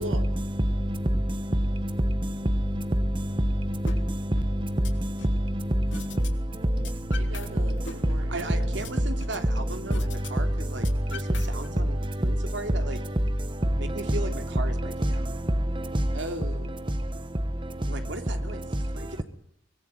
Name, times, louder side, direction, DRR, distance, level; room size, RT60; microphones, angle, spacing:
voice 1, 0.0-6.2 10.2-10.4 11.2-11.3 12.2-12.3 13.0-13.2 13.9-14.4 14.8-15.3 15.8-16.2, equal, 25° right, 1.0 m, -26 dB
sound 1, 3.9-4.0 4.4-5.4 5.9-6.3 6.6-7.5 7.8-9.4 9.9-10.3 10.6-11.9, left 4 dB, 65° left, 3.2 m, -42 dB
voice 2, 7.1-8.6 16.1-16.7, right 1 dB, 75° right, 3.7 m, -37 dB
voice 3, 8.3-10.8 11.1-13.0 13.8-15.3 17.8-18.6 18.9-19.2, right 2 dB, 60° right, 3.1 m, -37 dB
24.5 x 19.5 x 9.7 m
head